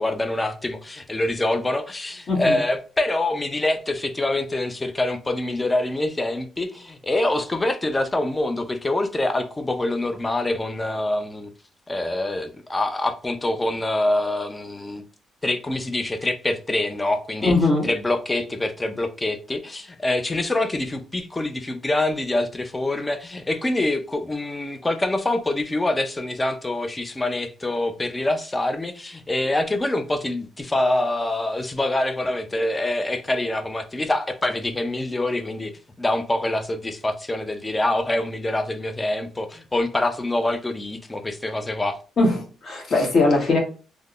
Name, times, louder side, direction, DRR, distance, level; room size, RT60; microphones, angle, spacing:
voice 1, 0.0-11.5 11.9-15.0 15.4-17.5 17.8-35.7 36.0-42.0, left 2 dB, 20° left, 0.4 m, -25 dB
voice 2, 2.3-2.6 17.4-17.9 42.2-43.6, left 2 dB, 50° left, 1.3 m, -20 dB
3.4 x 2.0 x 2.3 m
cardioid pair, 90°, 0 cm